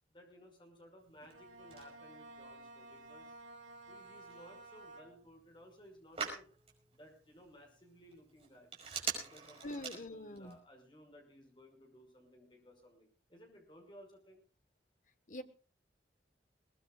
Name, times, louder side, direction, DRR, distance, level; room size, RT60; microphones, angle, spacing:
voice 1, 0.1-3.4 3.9-6.5 6.9-8.7 9.1-14.4, equal, 25° left, 2 dB, 5.9 m, -59 dB
Telephone, 1.0-10.6, right 6 dB, 35° right, 5.4 m, -47 dB
Bowed string instrument, 1.2-5.5, right 2 dB, 90° right, 4.2 m, -54 dB
voice 2, 9.6-10.6 15.3-15.4, left 1 dB, 45° left, 9 dB, 1.4 m, -44 dB
22.5 x 19.0 x 2.4 m, 0.35 s
head